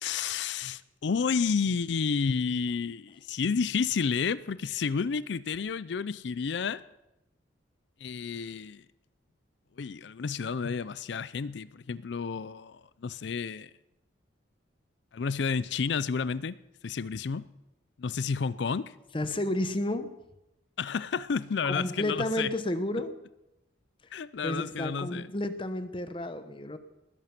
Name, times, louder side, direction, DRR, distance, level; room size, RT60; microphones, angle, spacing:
voice 1, 0.0-6.8 8.0-8.8 9.8-13.7 15.1-16.6 16.8-17.5 18.0-18.9 20.8-22.5 24.1-25.3, left 5 dB, 65° left, 0.4 m, -31 dB
voice 2, 19.1-20.1 21.6-23.2 24.4-26.8, left 1 dB, 25° left, 0.9 m, -31 dB
20.0 x 11.0 x 5.9 m
head